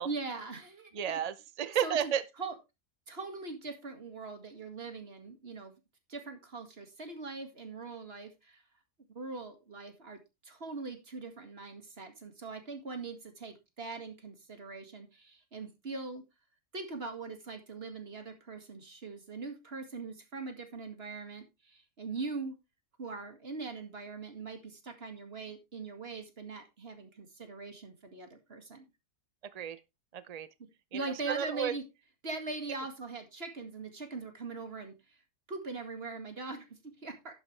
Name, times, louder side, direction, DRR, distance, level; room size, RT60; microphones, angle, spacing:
voice 1, 0.0-1.2 1.8-2.1 2.4-2.5 3.1-5.7 6.1-8.6 9.1-16.2 16.7-22.6 23.0-28.9 30.9-31.8 32.2-35.2 35.5-37.3, right 3 dB, 40° right, 2.2 m, -41 dB
voice 2, 0.9-2.2 29.5-29.8 30.1-30.5 30.9-31.7, right 9 dB, 70° right, 0.3 m, -32 dB
11.0 x 8.7 x 3.3 m
omnidirectional pair, 1.7 m